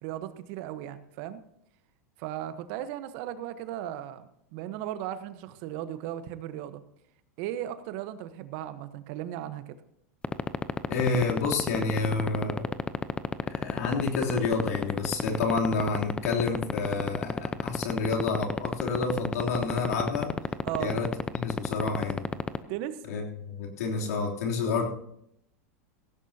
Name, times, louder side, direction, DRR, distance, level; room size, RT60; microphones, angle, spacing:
voice 1, 0.0-1.4 2.2-6.8 7.4-9.8 20.6-21.0 22.7-23.0, right 11 dB, 60° right, 12 dB, 1.1 m, -36 dB
sound 1, 10.2-22.6, left 4 dB, 15° left, 0.7 m, -27 dB
voice 2, 10.9-12.7 13.4-20.3 20.8-22.3 23.1-24.8, left 4 dB, 80° left, 0 dB, 3.2 m, -29 dB
16.0 x 15.5 x 2.9 m, 0.74 s
hypercardioid pair, 105°, 8 cm